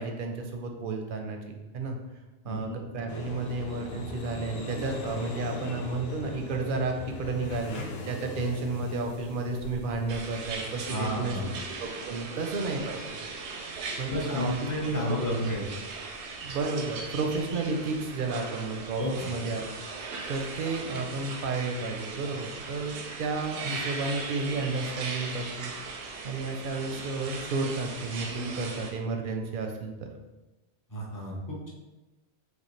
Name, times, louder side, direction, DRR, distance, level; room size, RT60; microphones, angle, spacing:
voice 1, 0.0-2.0 2.4-11.4 11.8-13.3 14.0-14.5 14.8-15.2 16.4-19.6 20.3-30.1, right 3 dB, 60° right, 3 dB, 0.7 m, -32 dB
voice 2, 2.4-2.8 10.9-11.5 14.1-15.6 19.0-19.3 30.9-31.7, left 1 dB, 20° left, -4 dB, 0.7 m, -31 dB
sound 1, 3.1-11.1, left 2 dB, 70° left, 0.8 m, -40 dB
sound 2, 10.1-28.9, right 4 dB, 85° right, 0.9 m, -39 dB
5.2 x 2.1 x 3.1 m, 1.1 s
omnidirectional pair, 1.1 m